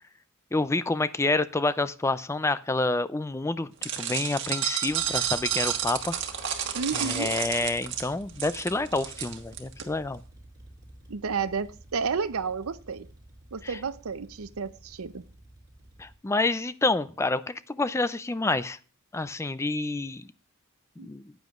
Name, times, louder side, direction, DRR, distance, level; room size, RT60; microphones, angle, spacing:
voice 1, 0.5-6.1 6.9-10.2 13.6-13.8 16.0-18.8 19.1-20.3 21.0-21.3, left 2 dB, 15° left, 14 dB, 0.4 m, -28 dB
sound 1, 3.8-9.8, right 9 dB, 60° right, 1.4 m, -31 dB
sound 2, 4.9-16.1, right 1 dB, 20° right, 3.5 m, -51 dB
voice 2, 6.7-7.3 11.1-13.1 13.5-15.2 21.0-21.1, right 5 dB, 75° right, 13 dB, 0.6 m, -31 dB
14.5 x 9.3 x 2.4 m, 0.38 s
head